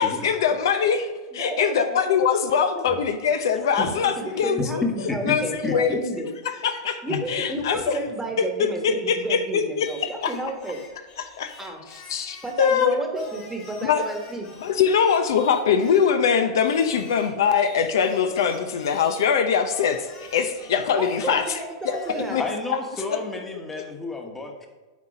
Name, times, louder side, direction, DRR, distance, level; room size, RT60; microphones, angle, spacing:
voice 1, 0.0-4.8 5.3-6.0 6.4-7.0 7.3-8.0 8.4-10.3 11.2-11.5 12.1-13.0 13.8-14.0 14.6-21.6 21.9-22.0 22.3-22.4 23.1-23.2, left 7 dB, 75° left, 8 dB, 0.7 m, -22 dB
voice 2, 1.3-2.0 2.7-2.8 4.2-6.3 7.0-10.8 11.6-11.8 12.4-14.5 21.0-22.4, right 2 dB, 10° right, 3 dB, 1.2 m, -32 dB
voice 3, 4.8-5.3 5.6-6.0 7.1-7.2 22.4-24.7, left 3 dB, 10° left, 3 dB, 1.2 m, -30 dB
Singing, 9.8-12.6 13.2-16.2 16.6-19.3 19.7-22.6, left 4 dB, 35° left, 2.3 m, -47 dB
8.3 x 4.1 x 4.9 m, 1.3 s
hypercardioid pair, 115°, 2 cm